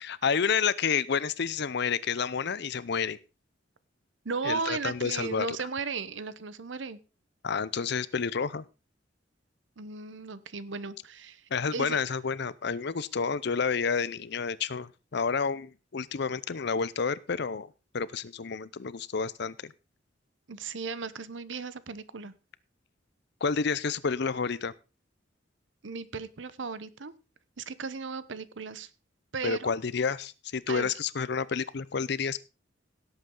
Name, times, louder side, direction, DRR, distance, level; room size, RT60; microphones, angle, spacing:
voice 1, 0.0-3.2 4.4-5.6 7.4-8.6 11.5-17.7 17.9-19.7 23.4-24.7 29.4-32.4, left 5 dB, 60° left, 18 dB, 0.6 m, -30 dB
voice 2, 4.2-7.0 9.8-11.4 11.7-12.0 20.5-22.3 25.8-27.1 27.6-28.9 29.3-29.7 30.7-30.9, right 4 dB, 75° right, 15 dB, 0.9 m, -36 dB
17.0 x 8.0 x 3.8 m, 0.31 s
head